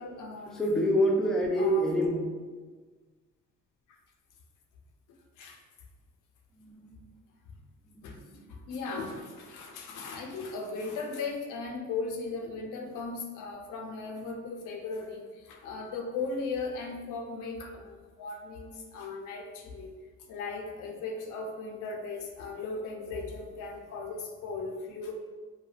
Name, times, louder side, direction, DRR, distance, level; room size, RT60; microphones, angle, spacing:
voice 1, 0.0-0.9 1.6-1.9 3.9-4.0 5.4-5.6 8.0-8.2 8.5-19.9 20.3-25.1, left 4 dB, 85° left, 2 dB, 0.5 m, -37 dB
voice 2, 0.5-2.3 6.6-6.9 7.9-8.4, equal, ahead, -1 dB, 0.3 m, -27 dB
3.2 x 2.2 x 2.3 m, 1.4 s
cardioid pair, 90°, 30 cm